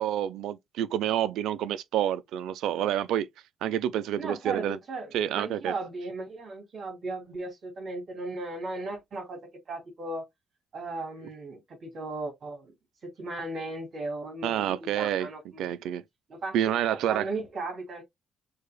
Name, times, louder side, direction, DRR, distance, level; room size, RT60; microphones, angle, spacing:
voice 1, 0.0-3.3 3.6-4.8 5.1-5.7 14.4-15.3 15.6-16.0 16.5-17.3, right 11 dB, 85° right, 0.5 m, -28 dB
voice 2, 4.2-9.4 9.7-10.3 10.7-12.7 13.0-15.7 16.3-18.0, right 2 dB, 55° right, 2.7 m, -36 dB
6.4 x 2.9 x 2.3 m
cardioid pair, 90°, 0 cm